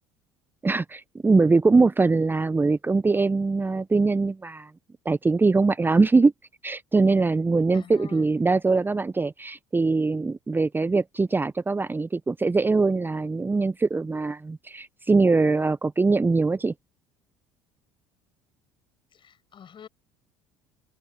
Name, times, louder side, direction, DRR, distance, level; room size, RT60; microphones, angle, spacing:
voice 1, 0.6-4.7 5.0-6.3 6.6-16.7, right 3 dB, 15° right, 0.7 m, -22 dB
voice 2, 7.7-8.3 19.1-19.9, left 8 dB, 40° left, 5.7 m, -46 dB
hypercardioid pair, 65°, 13 cm